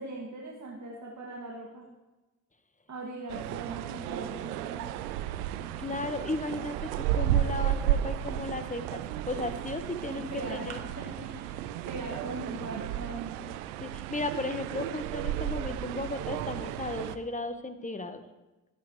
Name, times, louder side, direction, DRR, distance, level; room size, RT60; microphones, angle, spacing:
voice 1, 0.0-1.9 2.9-4.8 10.3-13.3, right 2 dB, 40° right, -2 dB, 2.2 m, -40 dB
sound 1, 3.3-17.2, right 12 dB, 80° right, 0.7 m, -33 dB
voice 2, 5.8-10.2 10.5-10.8 13.8-18.2, left 2 dB, 15° left, 9 dB, 1.3 m, -35 dB
22.5 x 8.9 x 3.2 m, 1.1 s
hypercardioid pair, 50°, 44 cm